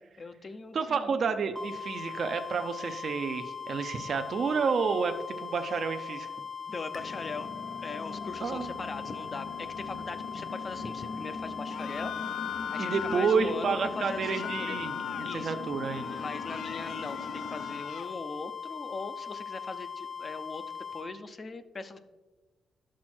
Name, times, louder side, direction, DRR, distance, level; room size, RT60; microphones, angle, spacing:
voice 1, 0.2-1.2 6.7-7.5 7.8-12.1 12.7-14.8 15.2-15.7 16.2-20.6 20.9-22.0, left 3 dB, 35° left, 10 dB, 0.6 m, -40 dB
voice 2, 0.7-6.3 8.4-8.7 12.8-16.2, right 5 dB, 45° right, 7 dB, 0.6 m, -30 dB
sound 1, 1.6-21.1, left 6 dB, 5° right, 0.7 m, -40 dB
sound 2, 6.9-17.8, left 3 dB, 55° left, 1.0 m, -42 dB
sound 3, 11.7-13.4 14.1-15.4 15.8-18.1, left 9 dB, 75° left, 0.3 m, -39 dB
11.5 x 6.2 x 4.4 m, 1.2 s
cardioid pair, 125°, 0 cm